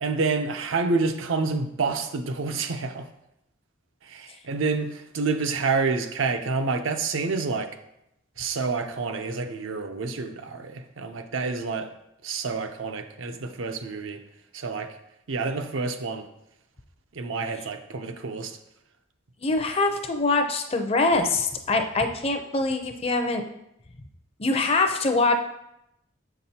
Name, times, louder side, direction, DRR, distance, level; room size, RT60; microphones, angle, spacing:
voice 1, 0.0-3.1 4.0-7.7 8.4-11.9 12.2-14.2 14.5-15.0 15.3-16.3 17.1-18.6, right 4 dB, 75° right, 7 dB, 0.6 m, -28 dB
voice 2, 19.4-23.4 24.4-25.3, left 3 dB, 30° left, 5 dB, 0.5 m, -24 dB
7.3 x 6.0 x 2.8 m, 0.83 s
head